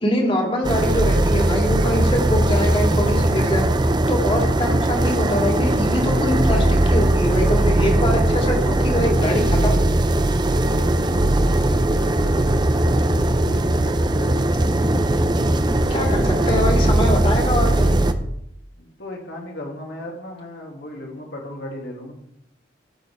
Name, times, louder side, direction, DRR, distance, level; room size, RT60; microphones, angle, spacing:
voice 1, 0.0-3.6 4.1-9.8 15.9-17.9, left 1 dB, 30° left, 0 dB, 2.5 m, -24 dB
sound 1, 0.6-18.1, right 1 dB, 25° right, 0.6 m, -19 dB
voice 2, 11.1-12.4 13.4-14.8 18.8-22.1, left 1 dB, 65° left, 0 dB, 2.5 m, -37 dB
16.5 x 6.7 x 3.5 m, 0.77 s
head